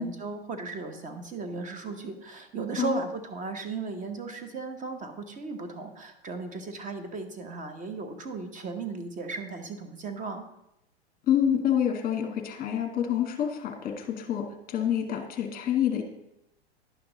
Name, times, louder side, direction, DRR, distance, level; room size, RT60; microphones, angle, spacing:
voice 1, 0.0-10.5, right 4 dB, 25° right, 8 dB, 1.2 m, -36 dB
voice 2, 11.3-16.0, left 9 dB, 25° left, 4 dB, 1.6 m, -27 dB
10.5 x 5.8 x 3.9 m, 0.85 s
hypercardioid pair, 110°, 33 cm